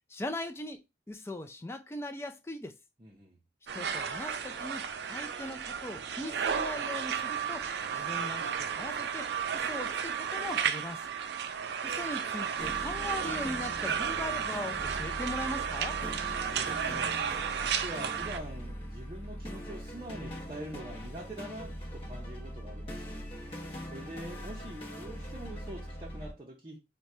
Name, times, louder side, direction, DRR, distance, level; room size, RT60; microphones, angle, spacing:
voice 1, 0.1-2.7 3.7-7.7 7.9-11.1 11.8-16.0, left 1 dB, 15° left, 0.3 m, -40 dB
voice 2, 3.0-3.4 16.4-17.2 17.6-23.2 23.8-26.8, right 1 dB, 30° right, 0.6 m, -44 dB
sound 1, 3.7-18.4, right 7 dB, 75° right, 0.4 m, -33 dB
sound 2, 12.6-26.3, equal, 30° left, 0.9 m, -42 dB
4.5 x 2.2 x 2.7 m
head